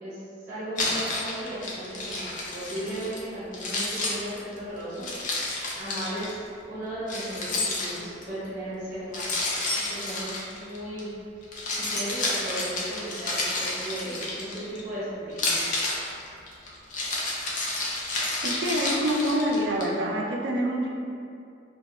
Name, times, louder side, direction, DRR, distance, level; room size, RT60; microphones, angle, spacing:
voice 1, 0.0-2.2 2.5-5.1 5.8-9.3 9.7-11.1 11.9-15.6, right 1 dB, 10° right, -12 dB, 0.9 m, -36 dB
Keys jangling, 0.8-3.2 3.5-6.3 7.1-8.3 9.1-11.0 11.4-14.8 15.3-19.8, left 2 dB, 45° left, 0.4 m, -30 dB
voice 2, 18.4-20.9, equal, 65° right, -1 dB, 0.4 m, -26 dB
2.3 x 2.2 x 2.8 m, 2.4 s
head